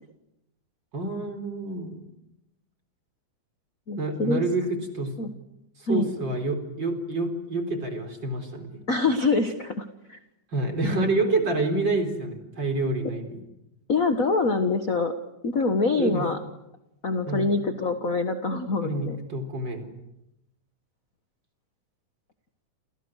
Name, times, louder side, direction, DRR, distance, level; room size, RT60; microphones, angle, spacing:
voice 1, 0.9-2.0 4.0-5.1 5.8-8.7 10.5-13.4 16.0-16.3 17.3-17.5 18.8-19.9, right 2 dB, 35° right, 6 dB, 4.5 m, -28 dB
voice 2, 3.9-4.4 5.2-5.3 5.9-6.1 8.9-10.2 10.8-11.0 13.9-15.1 15.4-16.4 17.0-19.2, left 3 dB, 45° left, 8 dB, 1.1 m, -25 dB
29.0 x 29.0 x 6.5 m, 0.87 s
omnidirectional pair, 3.7 m